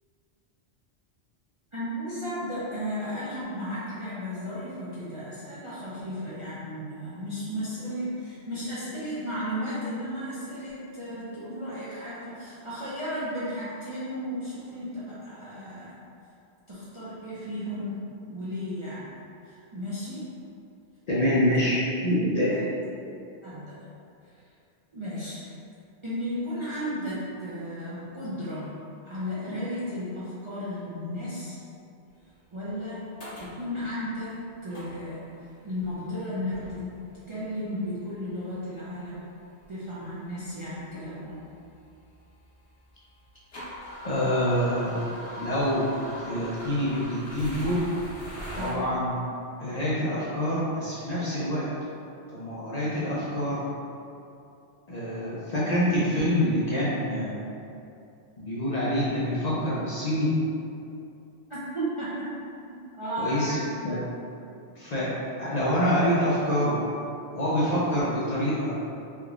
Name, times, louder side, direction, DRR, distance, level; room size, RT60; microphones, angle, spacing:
voice 1, 1.7-16.0 16.7-19.2 19.4-20.3 22.4-22.6 23.4-23.9 24.2-24.4 24.9-25.5 26.0-31.6 32.5-33.1 33.4-39.3 39.7-41.5 48.5-48.9 61.5-62.3 63.0-63.7, equal, 40° right, -11 dB, 0.4 m, -34 dB
voice 2, 21.1-22.6 44.0-45.0 45.4-47.8 48.5-49.2 49.6-51.7 52.3-53.7 54.9-57.4 58.4-60.3 63.2-63.6 63.8-64.0 64.8-65.1 65.4-66.8 67.3-68.9, equal, 50° left, -9 dB, 0.6 m, -26 dB
sound 1, 32.7-32.8 33.2-33.6 34.0-34.3 34.7-35.3 35.8-36.1 36.5-37.2 38.1-38.2 39.1-39.2 39.6-39.7 40.4-40.5 40.7-42.6 43.0-48.7, equal, 90° left, 1.2 m, -41 dB
3.5 x 2.8 x 2.4 m, 2.6 s
omnidirectional pair, 1.1 m